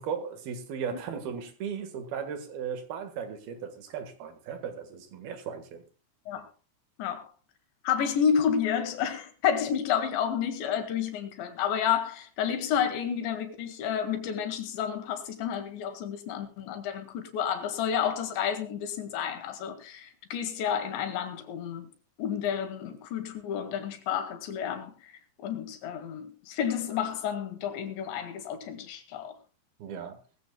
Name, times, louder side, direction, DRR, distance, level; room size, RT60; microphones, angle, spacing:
voice 1, 0.0-5.8 29.8-30.2, right 7 dB, 65° right, 3.2 m, -36 dB
voice 2, 7.8-21.9 22.2-24.9 25.4-29.3, left 8 dB, 80° left, 4.1 m, -30 dB
20.5 x 15.5 x 2.2 m
omnidirectional pair, 5.1 m